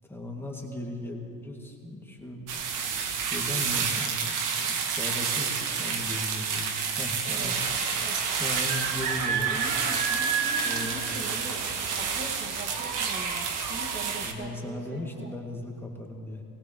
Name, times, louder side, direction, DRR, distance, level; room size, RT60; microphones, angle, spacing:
voice 1, 0.0-2.4 3.2-7.6 8.4-9.6 10.6-11.2 14.1-16.4, left 1 dB, 5° left, -1 dB, 2.0 m, -37 dB
sound 1, 2.5-14.3, right 6 dB, 70° right, 1.5 m, -29 dB
voice 2, 7.2-7.7 8.0-8.2 9.3-11.6 11.9-15.3, right 1 dB, 35° right, 1 dB, 1.8 m, -42 dB
20.0 x 17.5 x 3.0 m, 2.5 s
supercardioid pair, 95°, 33 cm